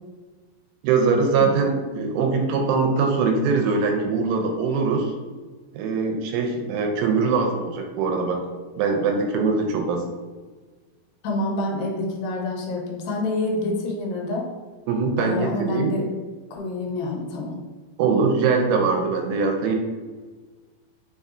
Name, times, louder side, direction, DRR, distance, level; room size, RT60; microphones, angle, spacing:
voice 1, 0.8-5.1 5.7-8.4 8.8-10.1 14.9-16.0 18.0-19.8, right 4 dB, 80° right, 3 dB, 2.2 m, -22 dB
voice 2, 11.2-14.5 15.2-16.1 16.5-17.5, left 2 dB, 80° left, 0 dB, 2.4 m, -27 dB
5.3 x 3.7 x 2.4 m, 1.4 s
omnidirectional pair, 4.3 m